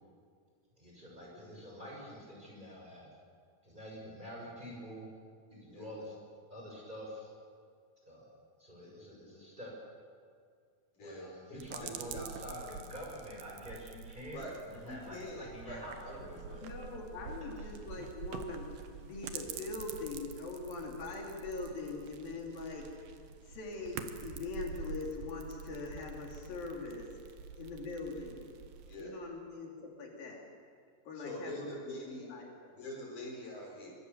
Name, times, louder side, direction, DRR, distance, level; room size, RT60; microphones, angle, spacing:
voice 1, 0.8-3.1 3.6-5.1 5.6-6.1 6.5-7.3 8.1-9.7 11.0-14.4 14.7-16.6 17.6-17.7, equal, 10° right, -3 dB, 6.5 m, -47 dB
voice 2, 11.0-12.3 14.2-14.6 14.8-16.8 28.9-29.2 31.1-32.3 32.7-33.9, left 1 dB, 60° left, 0 dB, 6.2 m, -45 dB
sound 1, 11.6-29.0, right 6 dB, 90° right, 3.2 m, -47 dB
voice 3, 16.6-18.7 19.0-23.1 23.5-27.1 27.6-28.5 29.0-30.4 31.1-32.7, left 3 dB, 75° left, 0 dB, 4.5 m, -42 dB
24.5 x 23.5 x 7.2 m, 2.2 s
omnidirectional pair, 4.2 m